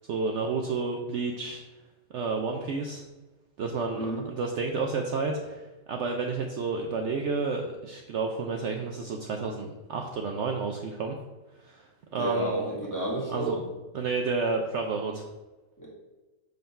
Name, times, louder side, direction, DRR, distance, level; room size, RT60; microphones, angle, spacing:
voice 1, 0.1-1.6 2.1-3.0 3.6-11.2 11.6-11.9 12.1-12.7 13.3-13.6 13.9-15.3, right 4 dB, 75° right, 2 dB, 0.6 m, -30 dB
voice 2, 12.2-13.6 15.8-15.9, right 1 dB, 10° left, -5 dB, 1.5 m, -30 dB
5.5 x 3.9 x 5.6 m, 1.1 s
omnidirectional pair, 1.8 m